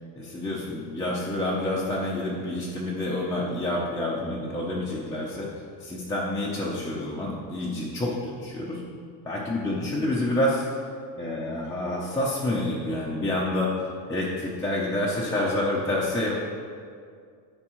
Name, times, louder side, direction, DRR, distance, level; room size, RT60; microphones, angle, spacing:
voice 1, 0.2-5.5 5.8-8.8 9.3-10.6 11.2-13.7 14.1-16.3, left 1 dB, 5° left, -7 dB, 0.6 m, -28 dB
13.5 x 5.3 x 3.1 m, 2.2 s
cardioid pair, 165°, 45 cm